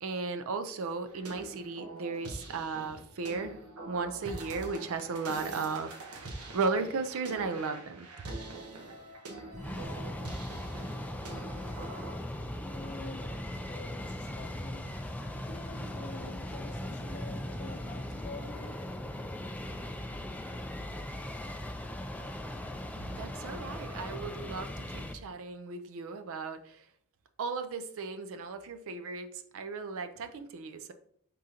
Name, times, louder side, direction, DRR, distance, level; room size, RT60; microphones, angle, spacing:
voice 1, 0.0-3.6 3.9-8.1 23.2-26.8 27.4-30.9, right 4 dB, 65° right, 9 dB, 0.4 m, -35 dB
sound 1, 1.1-12.1, right 2 dB, 85° right, 1.0 m, -44 dB
sound 2, 9.5-25.1, left 1 dB, 5° left, 0.3 m, -39 dB
voice 2, 11.9-18.8, left 3 dB, 35° left, 5 dB, 0.6 m, -48 dB
4.9 x 3.7 x 2.8 m, 0.64 s
head